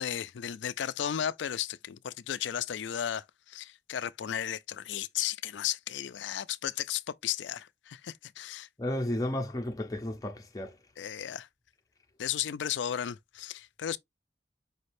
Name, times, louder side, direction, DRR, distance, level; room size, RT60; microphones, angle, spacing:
voice 1, 0.0-8.7 11.0-11.5 12.2-14.0, left 10 dB, 90° left, 0.4 m, -34 dB
voice 2, 8.8-10.7, left 1 dB, 20° left, 0.6 m, -33 dB
5.0 x 3.2 x 2.6 m
head